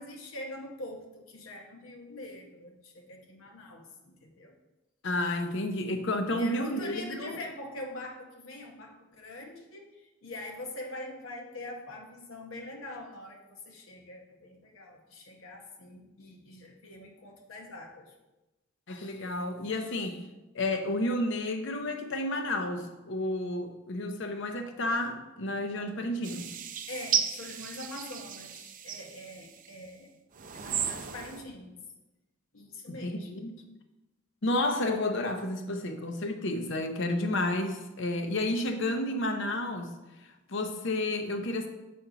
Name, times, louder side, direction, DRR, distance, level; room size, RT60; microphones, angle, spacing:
voice 1, 0.0-4.5 6.3-18.1 26.0-26.4 26.9-30.1 30.5-31.7 32.5-33.5, left 1 dB, 90° left, 1 dB, 1.0 m, -44 dB
voice 2, 5.0-7.4 18.9-20.2 20.5-26.5 32.9-33.6 34.4-39.9 40.5-41.7, left 1 dB, 65° left, 6 dB, 0.8 m, -31 dB
sound 1, 26.2-29.7 30.3-31.4, right 8 dB, 40° right, 0.5 m, -34 dB
6.8 x 4.3 x 5.0 m, 1.0 s
head